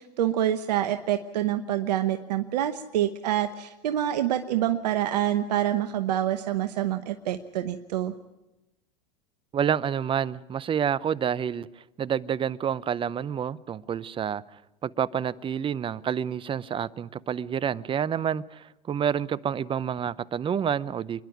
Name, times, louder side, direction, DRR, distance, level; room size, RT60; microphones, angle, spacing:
voice 1, 0.0-8.1, right 11 dB, 80° right, 9 dB, 1.0 m, -26 dB
voice 2, 9.5-11.7 12.0-14.4 14.8-21.2, right 8 dB, 25° right, 20 dB, 0.6 m, -28 dB
27.0 x 11.0 x 9.4 m, 1.0 s
hypercardioid pair, 95°, 21 cm